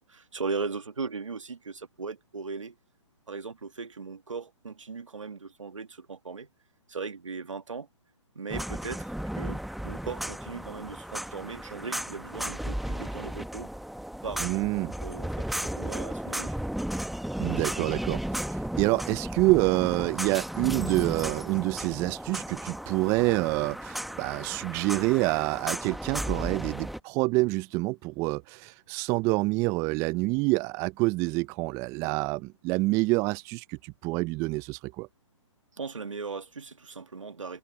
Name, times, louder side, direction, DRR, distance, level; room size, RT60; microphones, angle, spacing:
voice 1, 0.0-2.8 3.3-6.5 6.9-7.9 8.4-13.7 14.2-14.4 15.0-16.6 35.7-37.6, right 4 dB, 85° right, 1.8 m, -38 dB
sound 1, 8.5-27.0, equal, ahead, 1.1 m, -34 dB
voice 2, 14.4-14.9 17.4-18.2 18.5-35.1, right 24 dB, 20° right, 0.4 m, -27 dB
hypercardioid pair, 135°, 16 cm